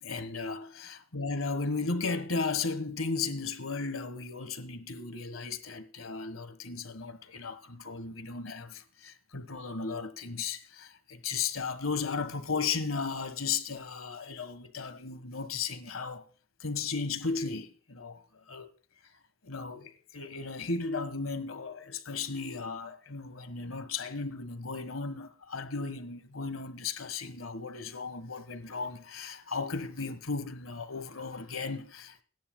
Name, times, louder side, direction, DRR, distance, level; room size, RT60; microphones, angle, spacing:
voice 1, 0.0-16.2 16.6-18.7 19.4-32.2, left 4 dB, 85° left, 1.5 m, -35 dB
23.0 x 10.0 x 2.2 m
head